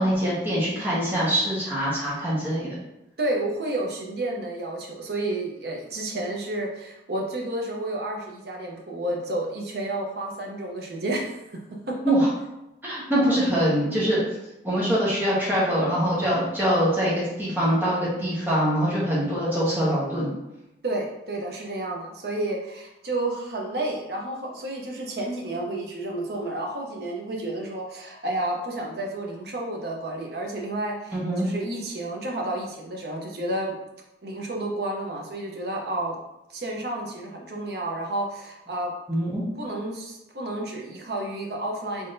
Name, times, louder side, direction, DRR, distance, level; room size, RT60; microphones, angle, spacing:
voice 1, 0.0-2.8 12.0-12.3 12.8-14.2 14.6-20.3 31.1-31.5 39.1-39.4, equal, 10° right, -8 dB, 1.2 m, -23 dB
voice 2, 3.2-11.6 11.9-12.0 13.1-13.4 20.8-31.2 31.4-33.8 34.2-36.2 36.5-38.9 39.6-42.1, right 1 dB, 55° right, 0 dB, 0.7 m, -31 dB
3.7 x 3.4 x 2.6 m, 0.90 s
head